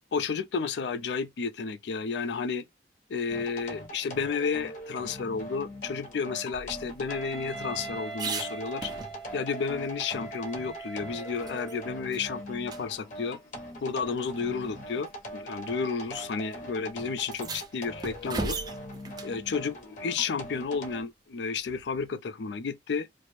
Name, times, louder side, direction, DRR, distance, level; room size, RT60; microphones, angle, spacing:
voice 1, 0.0-2.6 3.1-8.9 9.3-13.4 13.8-18.6 19.2-23.1, left 5 dB, 70° left, 0.4 m, -32 dB
sound 1, 3.3-21.0, equal, 45° left, 0.7 m, -42 dB
sound 2, 6.5-9.5 9.9-10.0 10.3-11.8 12.1-12.3 12.7-12.8 13.9-14.0 14.9-15.1 16.1-16.3 16.5-16.6 17.2-19.4 21.7-22.1, right 4 dB, 25° right, 0.3 m, -39 dB
Wind instrument woodwind instrument, 7.1-12.1, right 4 dB, ahead, 0.7 m, -42 dB
2.5 x 2.0 x 3.0 m
head